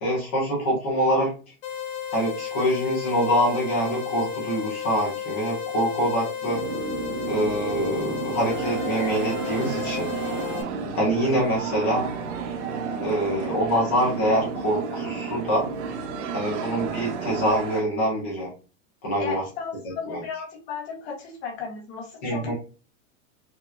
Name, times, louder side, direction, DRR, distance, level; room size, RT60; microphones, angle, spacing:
voice 1, 0.0-1.3 2.1-6.6 7.3-10.1 10.9-12.1 13.0-15.7 16.3-18.5 19.0-19.4 20.1-20.2 22.2-22.5, equal, 10° left, -4 dB, 0.3 m, -25 dB
sound 1, 1.6-10.6, left 8 dB, 75° left, 1.4 m, -33 dB
sound 2, 6.5-17.5, right 4 dB, 85° right, 1.0 m, -33 dB
sound 3, 8.4-17.8, right 8 dB, 60° right, 0.9 m, -37 dB
voice 2, 19.2-22.5, left 5 dB, 50° left, -1 dB, 1.4 m, -35 dB
5.8 x 2.2 x 2.7 m, 0.36 s
supercardioid pair, 180°, 41 cm